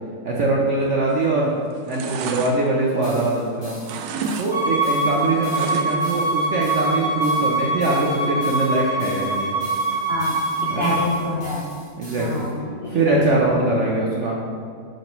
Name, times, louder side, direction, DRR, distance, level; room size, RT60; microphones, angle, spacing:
voice 1, 0.2-1.5 1.9-3.8 4.4-9.5 10.7-11.0 12.0-12.5 12.9-14.4, right 2 dB, 60° right, -2 dB, 0.7 m, -22 dB
sound 1, 1.0-1.4 1.7-3.5 3.8-4.5 4.8-6.2 6.5-6.6, right 5 dB, 80° right, 1.2 m, -31 dB
sound 2, 3.0-12.5, equal, 15° left, 1.8 m, -44 dB
Bowed string instrument, 4.5-11.0, right 2 dB, 20° right, 1.9 m, -24 dB
voice 2, 9.9-10.4 10.8-11.6 12.2-13.4, left 4 dB, 55° left, -4 dB, 0.6 m, -27 dB
6.4 x 4.5 x 5.2 m, 2.3 s
omnidirectional pair, 2.0 m